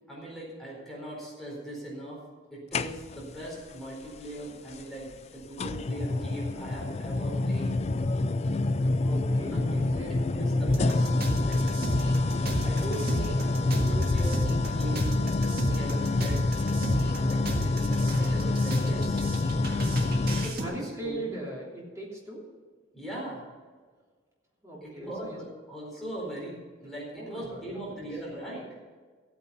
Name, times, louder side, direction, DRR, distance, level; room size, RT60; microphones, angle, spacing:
voice 1, 0.1-2.2 2.5-7.8 9.5-11.1 11.4-11.6 12.6-15.3 15.7-16.6 17.2-19.2 20.2-21.3 22.9-23.4 24.8-28.7, right 1 dB, ahead, -5 dB, 4.3 m, -39 dB
sound 1, 2.7-3.4 4.7-4.8 5.6-20.6, left 2 dB, 30° left, 0.3 m, -27 dB
voice 2, 9.0-10.1 20.6-22.4 24.6-25.4 27.2-28.0, right 1 dB, 15° right, -4 dB, 3.1 m, -39 dB
sound 2, 10.7-20.7, right 1 dB, 50° right, 1.8 m, -34 dB
14.5 x 9.3 x 5.6 m, 1.5 s
head